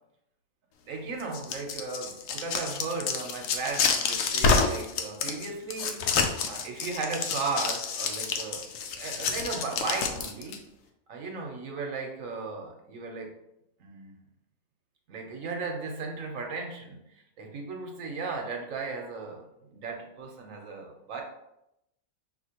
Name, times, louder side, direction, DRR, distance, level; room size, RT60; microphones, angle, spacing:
voice 1, 0.9-6.0 6.4-10.6 11.1-13.3 13.8-14.1 15.1-17.0 17.4-21.2, right 4 dB, 90° right, 2 dB, 1.2 m, -36 dB
sound 1, 1.2-10.6, left 5 dB, 85° left, 1.0 m, -28 dB
5.7 x 2.8 x 2.8 m, 0.82 s
omnidirectional pair, 1.3 m